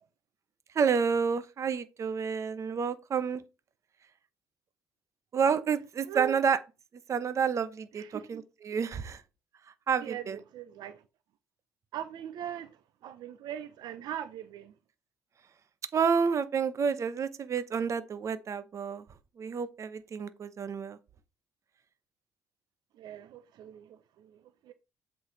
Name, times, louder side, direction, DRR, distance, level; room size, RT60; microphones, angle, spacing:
voice 1, 0.7-3.4 5.3-6.6 7.1-9.2 9.9-10.4 15.9-19.0 19.4-21.0, right 6 dB, 45° right, 0.9 m, -29 dB
voice 2, 8.0-8.4 10.0-11.0 11.9-12.7 13.0-14.7 23.0-24.7, right 10 dB, 70° right, 0.7 m, -41 dB
7.8 x 4.7 x 4.0 m
cardioid pair, 100°, 7 cm